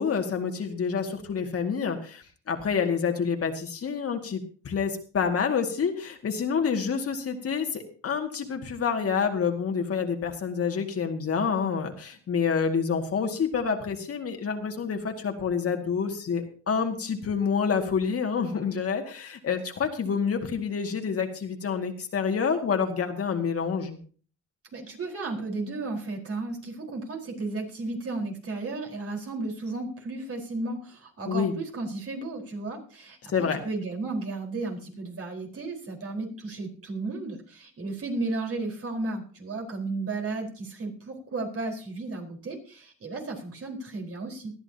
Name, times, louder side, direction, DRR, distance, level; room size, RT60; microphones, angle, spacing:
voice 1, 0.0-24.0 31.3-31.5 33.3-33.6, left 6 dB, 50° left, 4 dB, 2.2 m, -28 dB
voice 2, 24.7-33.3 33.6-44.5, right 3 dB, 50° right, 1 dB, 4.5 m, -34 dB
19.5 x 13.0 x 2.9 m, 0.40 s
cardioid pair, 90°, 30 cm